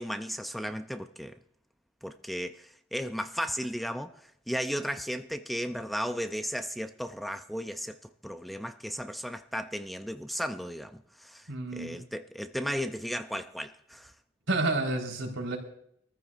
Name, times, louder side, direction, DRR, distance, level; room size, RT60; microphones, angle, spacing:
voice 1, 0.0-1.4 2.0-4.1 4.5-8.0 8.2-14.1, equal, ahead, 0.4 m, -35 dB
voice 2, 11.5-12.0 14.5-15.6, right 2 dB, 80° right, 4.0 m, -30 dB
25.0 x 14.5 x 2.5 m
head